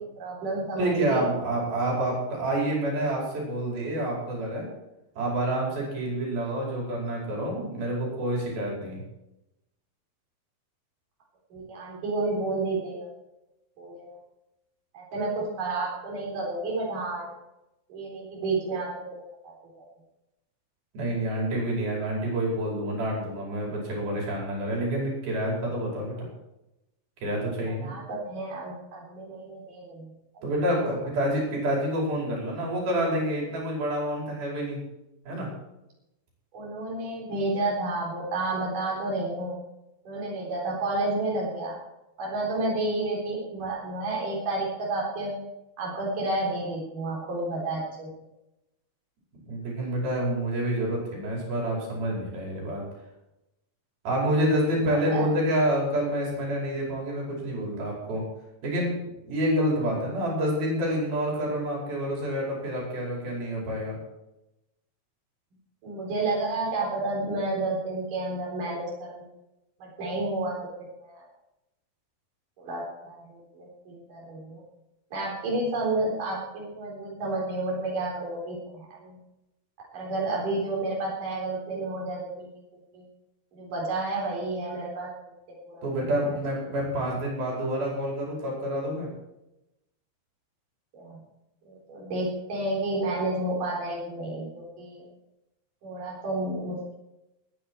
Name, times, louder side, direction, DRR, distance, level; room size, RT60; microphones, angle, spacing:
voice 1, 0.2-1.3 11.5-13.1 13.8-14.2 14.9-17.3 17.9-19.5 27.7-30.7 36.5-39.6 40.1-41.8 42.2-45.4 45.8-48.1 54.9-55.3 65.8-69.3 69.8-70.6 70.9-71.2 72.6-74.6 75.1-79.2 79.9-82.5 82.9-83.1 83.5-85.1 85.7-86.1 90.9-91.2 91.7-95.1 95.8-97.0, right 2 dB, 65° right, -4 dB, 5.7 m, -31 dB
voice 2, 0.8-4.7 5.2-9.0 20.9-26.2 27.2-27.9 30.4-34.8 35.3-35.5 49.5-52.8 54.1-58.2 58.6-64.0 85.8-89.1, right 1 dB, 85° right, -3 dB, 6.9 m, -28 dB
21.0 x 10.0 x 4.7 m, 0.91 s
omnidirectional pair, 4.1 m